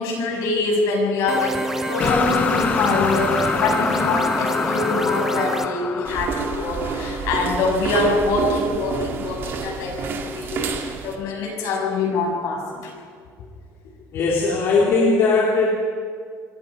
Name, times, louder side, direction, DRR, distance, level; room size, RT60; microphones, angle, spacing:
voice 1, 0.0-12.9 14.8-15.0, left 3 dB, 65° left, 0 dB, 7.3 m, -24 dB
sound 1, 1.3-5.7, right 1 dB, 5° right, 1.2 m, -27 dB
sound 2, 2.0-8.0, left 6 dB, 25° left, 0.6 m, -26 dB
sound 3, 6.0-11.1, right 5 dB, 40° right, 2.1 m, -28 dB
voice 2, 14.1-15.7, left 3 dB, 45° left, -4 dB, 3.4 m, -19 dB
27.0 x 22.5 x 5.2 m, 2.1 s
cardioid pair, 175°, 6 cm